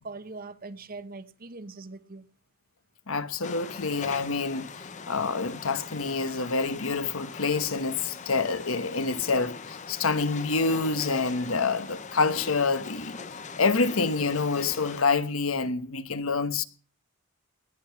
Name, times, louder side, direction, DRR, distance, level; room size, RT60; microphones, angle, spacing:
voice 1, 0.0-2.3, right 3 dB, 45° right, 0.9 m, -41 dB
voice 2, 3.1-4.7 5.1-13.2 13.6-16.6, left 4 dB, 85° left, 1.1 m, -27 dB
sound 1, 3.4-15.0, left 5 dB, 35° left, 0.7 m, -41 dB
19.0 x 10.0 x 5.8 m
head